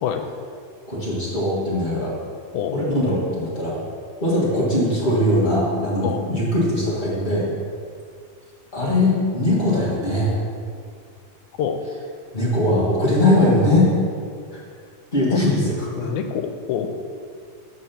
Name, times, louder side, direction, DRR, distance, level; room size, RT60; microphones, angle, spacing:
voice 1, 0.9-2.1 2.7-3.8 4.2-7.5 8.7-10.3 12.3-13.9 14.5-14.6 15.1-16.1, left 1 dB, 60° left, -8 dB, 0.5 m, -20 dB
voice 2, 16.0-16.9, left 8 dB, 85° left, 7 dB, 2.0 m, -26 dB
6.8 x 4.7 x 5.8 m, 2.2 s
omnidirectional pair, 3.4 m